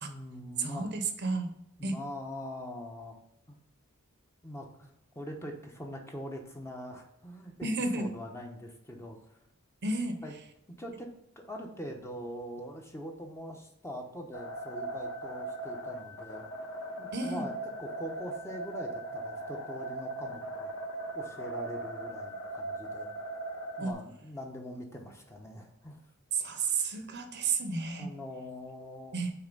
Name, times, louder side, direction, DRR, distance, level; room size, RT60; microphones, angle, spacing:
voice 1, 0.0-0.9 1.8-3.2 3.5-3.6 4.4-7.7 7.9-9.4 10.2-10.3 10.8-11.1 11.4-16.4 17.0-17.5 17.8-20.9 21.1-23.1 23.8-26.0 27.9-29.2, equal, 15° left, 2 dB, 0.9 m, -43 dB
voice 2, 0.6-1.5 1.8-2.0 7.6-8.1 9.8-10.2 17.1-17.4 23.8-24.0 26.3-28.1 29.1-29.3, right 4 dB, 55° right, 7 dB, 0.8 m, -31 dB
sound 1, 14.3-23.9, right 2 dB, 70° left, 1.3 m, -39 dB
5.8 x 4.3 x 5.2 m, 0.77 s
head